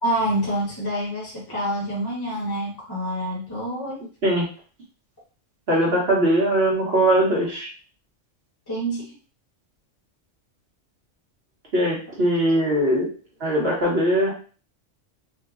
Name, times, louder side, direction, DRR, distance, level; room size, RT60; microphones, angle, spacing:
voice 1, 0.0-4.0 8.7-9.1, right 1 dB, 20° left, -6 dB, 1.1 m, -27 dB
voice 2, 5.7-7.7 11.7-13.1 13.4-14.3, right 1 dB, 55° right, -4 dB, 1.2 m, -20 dB
3.7 x 2.1 x 2.4 m, 0.39 s
omnidirectional pair, 1.3 m